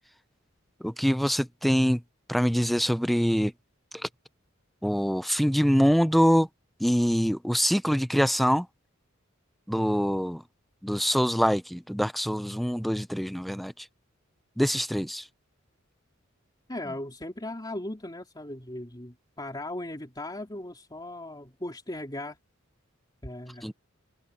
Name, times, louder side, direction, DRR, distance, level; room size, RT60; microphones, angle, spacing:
voice 1, 0.8-2.0 2.3-3.5 3.9-4.1 4.8-6.5 6.8-8.7 9.7-10.4 10.8-13.9 14.6-15.3 23.6-23.7, equal, ahead, 0.6 m, -24 dB
voice 2, 16.7-22.4 23.2-23.7, left 1 dB, 20° left, 3.4 m, -38 dB
head